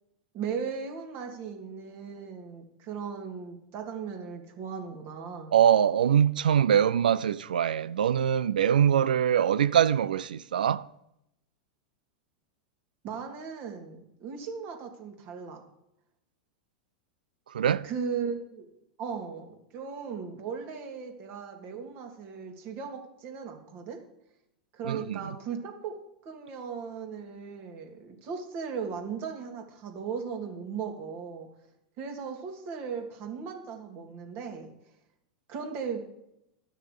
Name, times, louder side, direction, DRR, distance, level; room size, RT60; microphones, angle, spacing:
voice 1, 0.3-5.6 13.0-15.6 17.8-18.7 19.0-24.0 24.7-25.9 26.2-31.5 32.0-34.7 35.5-36.0, right 6 dB, 45° right, 2.7 m, -37 dB
voice 2, 5.5-10.9 17.5-17.9 24.8-25.2, right 9 dB, 80° right, 0.3 m, -23 dB
11.0 x 6.5 x 6.6 m
hypercardioid pair, 100°, 5 cm